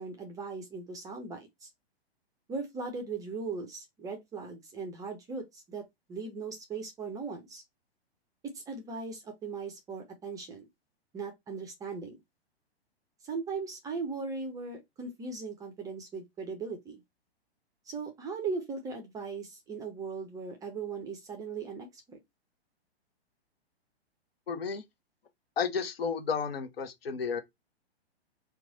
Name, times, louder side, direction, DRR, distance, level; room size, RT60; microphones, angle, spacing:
voice 1, 0.0-1.7 2.5-5.8 6.1-7.6 8.5-10.7 11.1-12.2 13.2-17.0 17.9-22.2, right 4 dB, 10° right, 0.5 m, -38 dB
voice 2, 24.5-24.8 25.6-27.4, left 6 dB, 65° left, 0.9 m, -32 dB
3.0 x 2.3 x 3.8 m
figure-of-eight pair, 115°, 32 cm